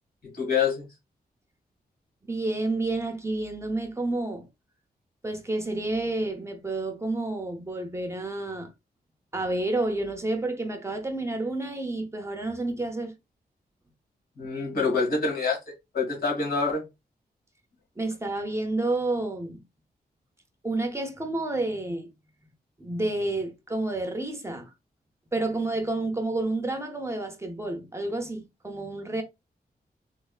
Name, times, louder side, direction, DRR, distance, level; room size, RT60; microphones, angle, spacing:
voice 1, 0.2-0.8 14.4-15.6 15.9-16.8, left 4 dB, 70° left, 1.8 m, -26 dB
voice 2, 2.2-4.5 5.2-8.7 9.3-13.1 18.0-19.6 20.6-22.1 22.8-24.7 25.3-29.2, right 2 dB, 15° right, 0.6 m, -30 dB
3.5 x 3.2 x 2.3 m
wide cardioid pair, 120°, 16 cm